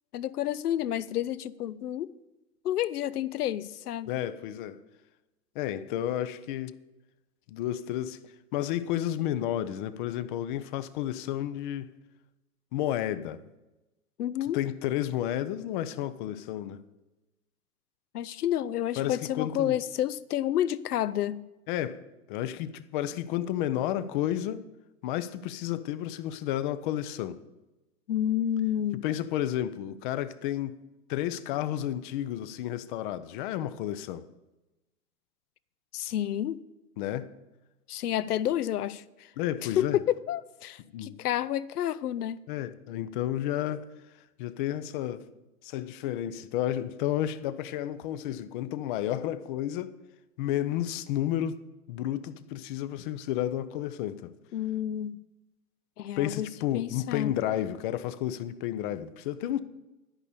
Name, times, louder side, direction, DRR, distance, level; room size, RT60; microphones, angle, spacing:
voice 1, 0.1-2.1 2.6-4.1 14.2-14.6 18.1-21.4 28.1-29.0 35.9-36.6 37.9-39.3 39.6-42.4 54.5-55.2 56.0-57.4, left 11 dB, 75° left, 0.6 m, -30 dB
voice 2, 4.1-4.8 5.5-6.7 7.5-8.2 8.5-11.9 12.7-13.4 14.5-16.8 19.0-19.8 21.7-22.0 22.3-24.7 25.0-27.4 29.0-30.8 31.1-34.3 37.0-37.3 39.4-40.0 40.9-41.2 42.5-43.9 44.4-45.2 45.6-50.0 50.4-51.6 51.9-54.4 56.2-59.6, left 12 dB, 35° left, 0.6 m, -31 dB
11.0 x 5.4 x 8.3 m
hypercardioid pair, 110°, 46 cm